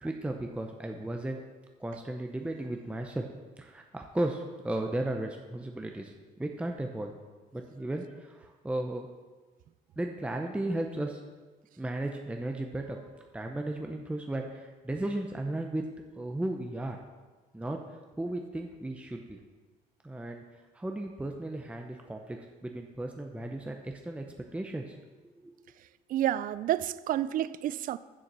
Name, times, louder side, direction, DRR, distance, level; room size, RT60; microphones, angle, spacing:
voice 1, 0.0-1.4 1.8-3.3 3.6-6.1 6.4-7.1 7.5-9.1 10.0-11.2 11.8-15.8 16.2-17.0 17.5-17.8 18.2-19.4 20.0-20.4 20.7-24.2 24.5-25.0 25.4-25.5, right 1 dB, 5° right, 0.8 m, -35 dB
voice 2, 26.1-28.0, right 12 dB, 55° right, 0.4 m, -29 dB
7.3 x 6.5 x 6.7 m
cardioid pair, 110°, 17 cm